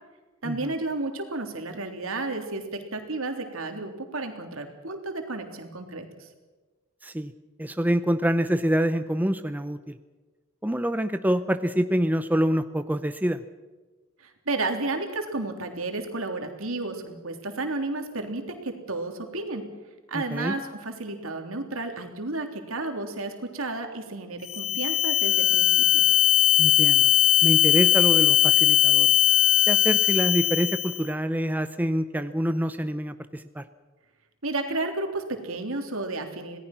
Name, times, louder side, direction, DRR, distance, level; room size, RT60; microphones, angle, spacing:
voice 1, 0.4-6.3 14.2-19.6 20.1-26.0 34.4-36.6, right 2 dB, 70° right, 5 dB, 3.4 m, -32 dB
voice 2, 7.6-10.0 10.6-13.4 20.1-20.5 26.6-27.1 27.4-29.1 29.7-33.6, equal, 10° right, 10 dB, 0.7 m, -26 dB
sound 1, 24.4-31.0, left 11 dB, 70° left, 1.7 m, -20 dB
26.5 x 18.5 x 6.1 m, 1.3 s
head